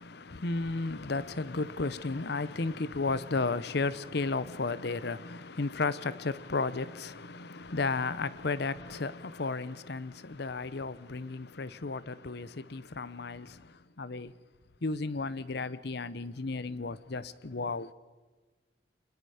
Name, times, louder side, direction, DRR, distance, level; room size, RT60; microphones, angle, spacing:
voice 1, 0.0-14.3 14.8-17.9, left 3 dB, 60° left, 0.8 m, -34 dB
26.5 x 20.5 x 5.0 m
head